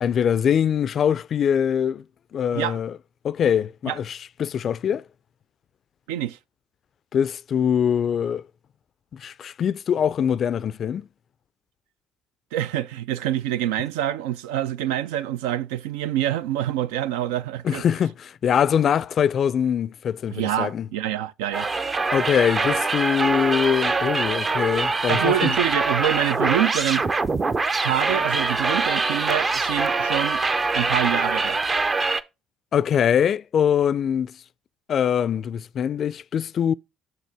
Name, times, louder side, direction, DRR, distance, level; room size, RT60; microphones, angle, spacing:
voice 1, 0.0-2.0 2.3-2.9 3.2-5.0 7.1-8.4 9.1-11.1 17.6-20.9 22.1-25.6 32.7-34.4 34.9-36.7, left 8 dB, 50° left, 0.3 m, -23 dB
voice 2, 6.1-6.4 12.5-17.8 20.3-21.7 25.1-27.1 27.8-30.4 30.7-31.6, right 12 dB, 75° right, 0.3 m, -26 dB
sound 1, 21.5-32.2, right 3 dB, 30° right, 0.6 m, -24 dB
6.5 x 6.3 x 3.4 m
hypercardioid pair, 55°, 0 cm